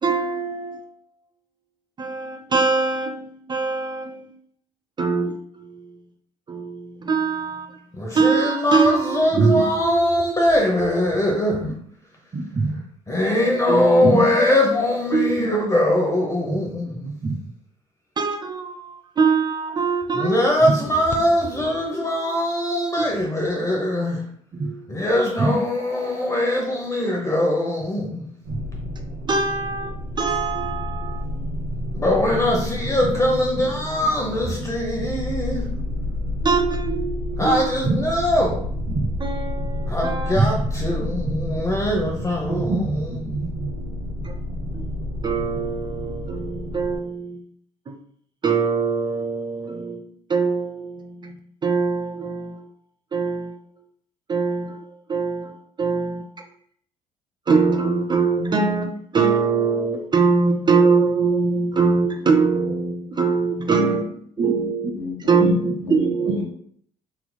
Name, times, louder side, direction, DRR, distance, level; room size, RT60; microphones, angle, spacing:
voice 1, 0.0-0.8 2.0-4.3 5.0-6.0 6.5-7.8 8.1-10.4 12.3-12.8 13.2-13.4 13.7-14.3 15.1-15.5 16.4-16.6 17.0-17.4 18.2-20.8 21.5-22.3 23.0-23.1 24.6-24.8 25.4-25.6 28.5-28.6 29.3-31.4 32.5-32.7 33.0-33.1 34.7-35.0 36.4-38.0 38.9-40.7 41.0-41.1 41.4-41.6 42.4-43.9 44.2-44.3 44.7-44.9 45.2-47.4 47.9-48.0 48.4-52.7 53.1-53.6 54.3-56.3 57.5-64.1 64.4-65.0 65.3-66.4, right 4 dB, 30° right, 4 dB, 0.5 m, -23 dB
voice 2, 7.9-11.7 13.1-17.1 20.1-24.3 24.9-28.3 31.9-35.7 37.4-38.7 39.9-43.3, left 1 dB, 20° left, -1 dB, 0.8 m, -22 dB
sound 1, 28.4-47.0, left 1 dB, 60° right, 0.8 m, -30 dB
voice 3, 63.7-64.1 64.4-66.5, left 3 dB, 75° left, 0 dB, 1.2 m, -32 dB
4.2 x 2.7 x 2.2 m, 0.62 s
hypercardioid pair, 55°, 16 cm